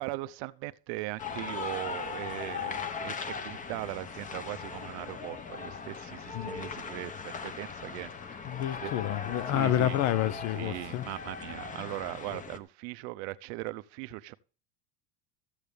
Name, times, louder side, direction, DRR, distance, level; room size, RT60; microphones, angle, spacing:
voice 1, 0.0-8.9 9.5-10.0 10.5-14.3, right 19 dB, 75° right, 0.8 m, -39 dB
sound 1, 1.2-12.6, left 5 dB, 25° left, 1.0 m, -39 dB
voice 2, 6.3-6.6 8.4-11.1, left 12 dB, 55° left, 0.9 m, -29 dB
15.0 x 8.1 x 3.4 m
cardioid pair, 145°, 33 cm